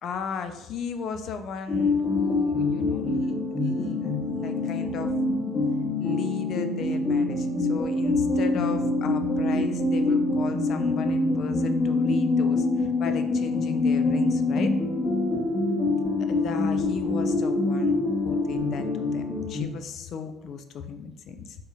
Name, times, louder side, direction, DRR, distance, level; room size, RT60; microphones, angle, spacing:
voice 1, 0.0-3.3 3.6-5.1 6.0-14.7 16.3-21.6, left 6 dB, 50° left, 8 dB, 0.3 m, -36 dB
sound 1, 1.7-19.6, left 2 dB, 35° left, 1.0 m, -25 dB
3.5 x 2.8 x 2.3 m, 0.87 s
figure-of-eight pair, 55°, 0 cm